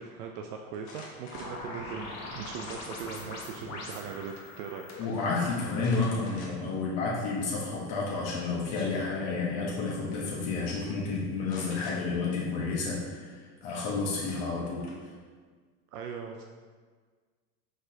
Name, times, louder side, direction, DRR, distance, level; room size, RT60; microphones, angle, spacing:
voice 1, 0.0-4.9 15.9-16.4, right 6 dB, 80° right, 3 dB, 0.5 m, -40 dB
sound 1, 0.7-1.6 2.7-3.3 3.7-4.2 4.5-4.6 5.8-6.8 7.3-7.4 8.4-9.2 10.2-10.3 10.6-10.9 11.4-12.0 13.7-13.8 14.3-15.1, left 2 dB, 85° left, 1.2 m, -48 dB
sound 2, 1.3-5.9, left 2 dB, 35° left, 1.1 m, -41 dB
voice 2, 5.0-14.9, left 4 dB, 60° left, -5 dB, 1.1 m, -31 dB
5.0 x 4.0 x 2.6 m, 1.5 s
hypercardioid pair, 85°, 45 cm